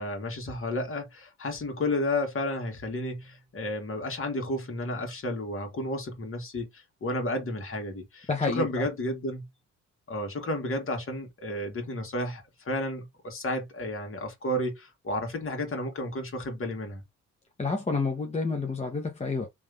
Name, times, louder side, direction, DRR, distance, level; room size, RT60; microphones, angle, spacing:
voice 1, 0.0-9.5 10.1-17.0, left 1 dB, 45° left, 2.1 m, -32 dB
voice 2, 8.3-8.7 17.6-19.5, left 4 dB, 20° left, 1.0 m, -29 dB
3.5 x 3.2 x 3.4 m
cardioid pair, 90°, 30 cm